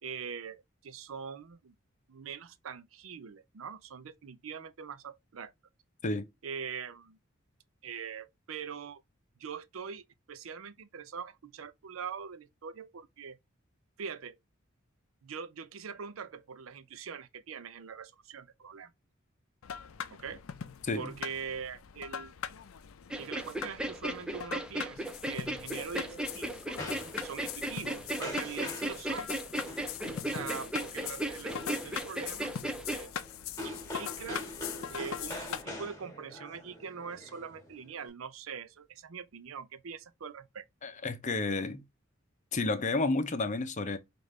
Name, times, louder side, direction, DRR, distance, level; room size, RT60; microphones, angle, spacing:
voice 1, 0.0-1.7 2.1-5.5 6.4-7.2 7.8-9.0 9.4-13.4 14.0-14.4 15.2-18.9 20.1-20.4 21.0-22.3 23.1-26.8 27.2-29.3 30.3-32.6 32.9-33.1 33.6-34.4 34.9-40.6, right 6 dB, 75° right, 0.5 m, -43 dB
sound 1, 19.6-35.6, left 8 dB, 90° left, 0.5 m, -42 dB
voice 2, 20.8-21.2 40.8-41.8 42.5-44.0, left 3 dB, 35° left, 0.6 m, -31 dB
sound 2, 23.1-33.0, right 1 dB, 5° right, 0.4 m, -36 dB
sound 3, 25.6-38.1, left 1 dB, 15° left, 1.5 m, -45 dB
5.0 x 2.5 x 3.1 m
head